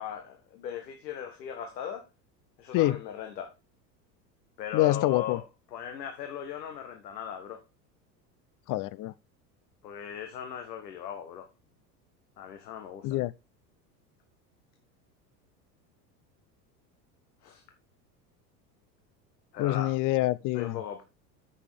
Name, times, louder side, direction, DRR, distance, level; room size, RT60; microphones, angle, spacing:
voice 1, 0.0-2.1 2.6-3.5 4.6-5.4 5.7-7.6 9.8-11.5 12.4-13.2 17.4-17.6 19.5-20.0 20.5-21.0, left 9 dB, 80° left, 1.5 m, -38 dB
voice 2, 4.7-5.4 8.7-9.1 13.0-13.3 19.6-20.8, left 17 dB, 40° left, 0.7 m, -26 dB
9.8 x 6.6 x 3.7 m
hypercardioid pair, 85°, 49 cm